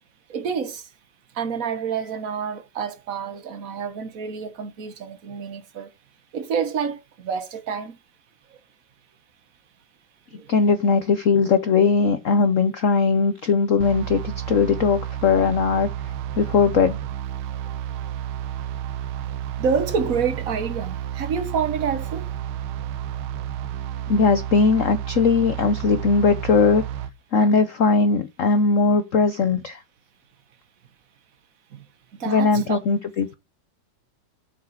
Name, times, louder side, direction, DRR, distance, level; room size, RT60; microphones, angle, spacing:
voice 1, 0.3-0.8 1.3-5.9 6.3-8.0 10.4-10.5 19.6-22.3 31.7-31.8 32.2-32.8, right 6 dB, 50° right, 1.4 m, -28 dB
voice 2, 10.5-15.9 16.4-17.0 24.1-26.8 27.3-29.8 32.3-33.3, left 4 dB, 60° left, 0.9 m, -19 dB
sound 1, 13.8-27.1, right 10 dB, 85° right, 1.5 m, -31 dB
7.6 x 4.9 x 5.7 m
omnidirectional pair, 2.2 m